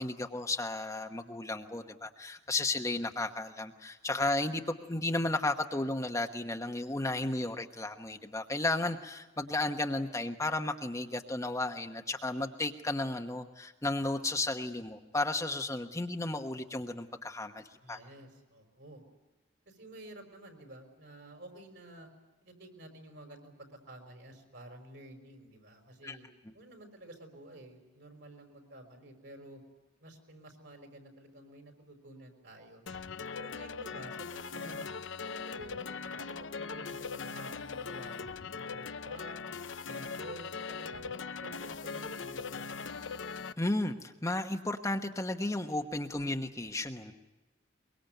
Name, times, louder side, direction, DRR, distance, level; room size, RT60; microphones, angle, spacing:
voice 1, 0.0-17.6 17.9-18.0 26.0-26.2 43.6-47.1, left 2 dB, 15° left, 5 dB, 1.1 m, -33 dB
voice 2, 17.8-19.0 19.7-22.1 22.4-26.3 26.5-29.6 30.0-32.8 33.4-34.9 35.2-39.4 39.9-42.7, right 1 dB, 65° right, 5 dB, 5.4 m, -51 dB
sound 1, 32.9-43.5, left 5 dB, 80° left, 0.8 m, -40 dB
24.0 x 22.5 x 9.2 m, 1.1 s
head